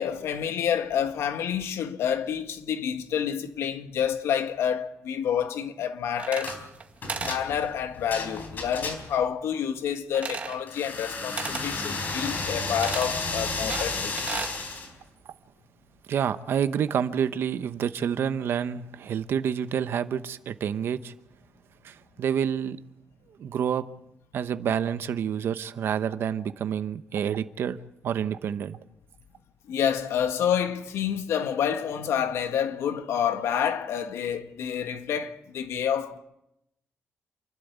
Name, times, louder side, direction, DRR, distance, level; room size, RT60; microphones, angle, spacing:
voice 1, 0.0-6.6 7.2-14.5 29.7-36.2, left 8 dB, 85° left, 1.5 m, -28 dB
sound 1, 6.1-6.8 7.1-7.4 10.1-10.6 11.4-11.7 12.8-13.1 13.7-14.6, right 5 dB, 30° right, 1.8 m, -34 dB
sound 2, 6.4-6.6 7.0-9.3 10.7-14.9, left 3 dB, 40° left, 4.0 m, -33 dB
voice 2, 16.1-21.1 21.8-22.8 23.4-23.8 24.3-27.8 28.0-28.8, right 8 dB, 60° right, 1.0 m, -28 dB
28.5 x 12.0 x 8.1 m
wide cardioid pair, 170°, 4 cm